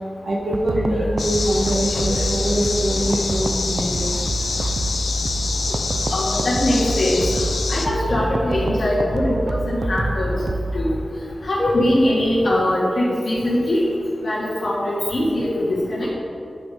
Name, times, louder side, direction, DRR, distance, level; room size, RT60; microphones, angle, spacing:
voice 1, 0.2-4.1, right 1 dB, 80° right, -3 dB, 1.7 m, -23 dB
sound 1, 0.5-10.9, right 1 dB, 60° right, 0.5 m, -26 dB
sound 2, 1.2-7.9, left 4 dB, 85° left, 0.6 m, -26 dB
voice 2, 6.1-7.2 7.7-10.3 10.7-10.9 11.4-13.8 14.2-16.1, left 1 dB, 65° left, -10 dB, 2.1 m, -21 dB
9.7 x 5.2 x 5.1 m, 2.5 s
wide cardioid pair, 85°, 0 cm